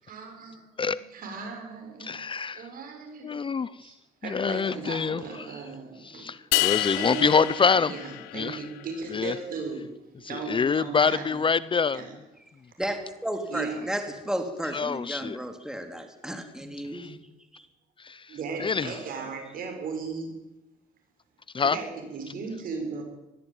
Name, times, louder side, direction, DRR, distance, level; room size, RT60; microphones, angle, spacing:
voice 1, 0.0-2.1 2.5-4.0 4.2-6.3 6.5-7.5 7.9-9.9 10.2-11.4 11.9-12.1 13.5-13.9 17.0-17.2 18.3-20.3 21.6-23.0, right 5 dB, 60° right, 7.0 m, -37 dB
voice 2, 2.0-2.7 3.2-3.9 4.2-5.6 6.0-7.9 8.3-8.6 9.1-9.3 10.2-12.1 14.7-15.4 16.8-17.2 18.0-19.0 21.5-21.8, left 5 dB, 30° left, 0.7 m, -26 dB
sound 1, 6.5-8.8, left 20 dB, 85° left, 0.7 m, -28 dB
voice 3, 12.8-17.0 17.5-17.6, equal, 5° right, 3.6 m, -33 dB
20.5 x 14.0 x 9.2 m
supercardioid pair, 75°, 16 cm